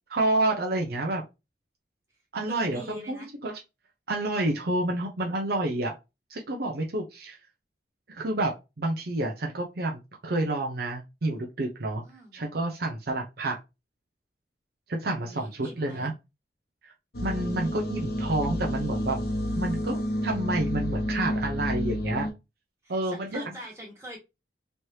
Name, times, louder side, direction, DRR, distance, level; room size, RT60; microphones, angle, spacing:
voice 1, 0.1-1.2 2.3-3.6 4.1-5.9 6.3-7.4 8.1-12.0 12.3-13.6 14.9-16.1 16.8-16.9 17.2-19.2 19.5-22.3 22.9-23.5, right 2 dB, 60° right, 1 dB, 0.7 m, -29 dB
voice 2, 2.5-3.3 12.0-12.4 15.2-16.1 22.8-24.2, equal, 15° right, -2 dB, 1.6 m, -43 dB
sound 1, 17.1-22.3, equal, 60° left, 0.9 m, -30 dB
3.2 x 3.2 x 2.8 m, 0.25 s
head